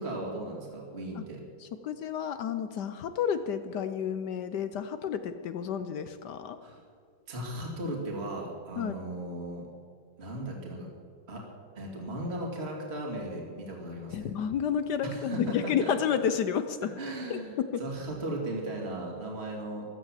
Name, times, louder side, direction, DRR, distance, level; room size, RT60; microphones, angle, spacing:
voice 1, 0.0-1.4 6.6-6.8 7.3-9.6 10.2-10.9 11.3-11.4 11.7-14.3 15.0-15.9 17.0-19.8, right 1 dB, 30° right, -1 dB, 2.6 m, -36 dB
voice 2, 1.6-6.6 8.8-8.9 14.1-16.9 17.3-17.7, left 8 dB, 65° left, 10 dB, 1.1 m, -31 dB
15.0 x 12.5 x 7.5 m, 2.1 s
omnidirectional pair, 2.2 m